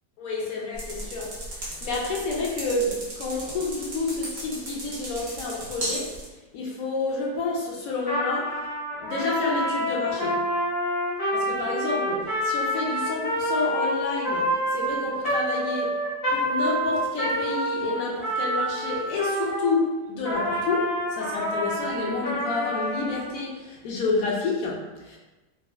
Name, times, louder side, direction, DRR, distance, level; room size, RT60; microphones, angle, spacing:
voice 1, 0.2-6.2 6.5-8.7 9.0-10.5 11.3-16.0 16.3-25.2, left 3 dB, 70° left, -3 dB, 0.9 m, -29 dB
sound 1, 0.7-6.3, right 1 dB, 50° right, 0.8 m, -36 dB
Trumpet, 8.0-19.8 20.2-23.2, equal, 30° left, 0.7 m, -27 dB
3.9 x 2.4 x 2.3 m, 1.1 s
omnidirectional pair, 1.9 m